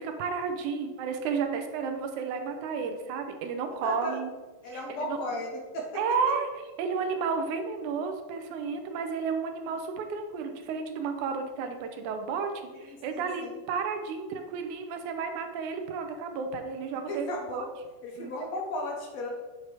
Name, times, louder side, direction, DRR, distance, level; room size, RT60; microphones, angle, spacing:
voice 1, 0.0-4.3 4.7-5.2 6.0-6.5 6.8-12.5 12.8-17.3 17.5-17.6 18.2-18.3, right 5 dB, 85° right, 6 dB, 2.1 m, -32 dB
voice 2, 3.8-4.2 4.6-5.9 7.1-7.2 12.8-13.5 17.1-17.7 18.0-19.3, left 1 dB, 65° left, 0 dB, 2.1 m, -35 dB
8.0 x 3.0 x 4.8 m, 1.3 s
omnidirectional pair, 3.4 m